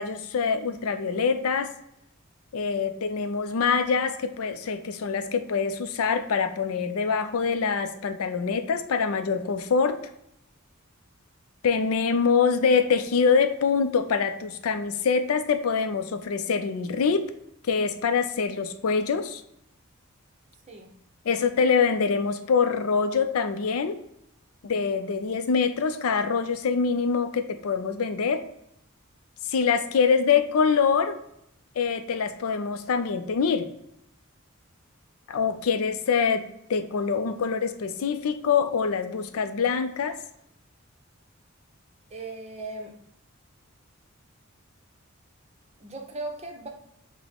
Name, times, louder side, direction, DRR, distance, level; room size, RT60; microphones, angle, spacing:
voice 1, 0.0-1.7 2.5-10.0 11.6-17.2 17.6-19.4 21.3-24.0 24.6-28.4 29.5-31.2 31.8-33.7 35.3-36.4 36.7-40.2, left 5 dB, 80° left, 9 dB, 0.4 m, -24 dB
voice 2, 42.1-42.9 45.8-46.7, right 2 dB, 30° right, 2 dB, 0.7 m, -37 dB
5.9 x 2.1 x 3.5 m, 0.76 s
head